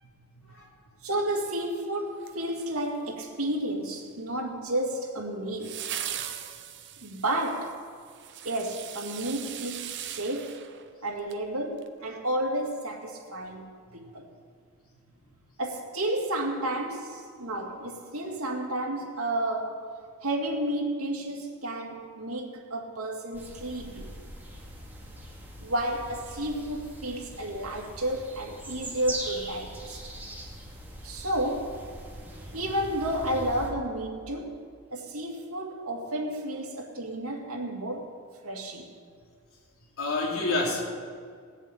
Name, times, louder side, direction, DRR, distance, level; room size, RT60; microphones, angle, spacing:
voice 1, 0.3-0.7 6.0-6.6 12.1-12.2 40.0-40.8, left 2 dB, 80° left, 3.2 m, -30 dB
voice 2, 1.0-5.8 7.0-7.8 8.4-10.6 11.0-14.3 15.6-19.9 20.2-24.1 25.6-30.0 31.0-31.9 32.5-34.6 34.9-38.1 38.4-38.9, right 1 dB, 80° right, 2.4 m, -31 dB
sound 1, 2.2-3.1 5.6-11.4 11.8-11.9, right 10 dB, 55° right, 0.8 m, -40 dB
sound 2, 23.3-33.7, right 1 dB, 10° right, 2.5 m, -42 dB
19.0 x 7.3 x 8.7 m
head